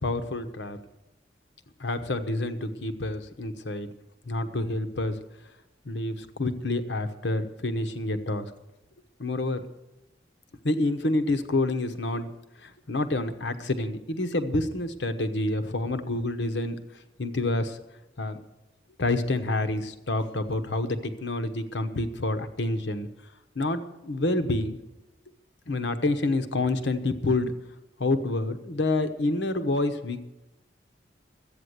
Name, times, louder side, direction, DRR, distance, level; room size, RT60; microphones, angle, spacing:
voice 1, 0.0-0.8 1.8-3.9 4.3-5.2 5.8-8.5 9.2-9.6 10.6-12.3 12.6-16.8 17.2-17.8 18.2-18.4 19.0-23.1 23.5-24.8 25.7-27.5 28.0-30.2, left 2 dB, 85° left, 9 dB, 1.0 m, -28 dB
13.0 x 8.8 x 8.0 m, 0.95 s
head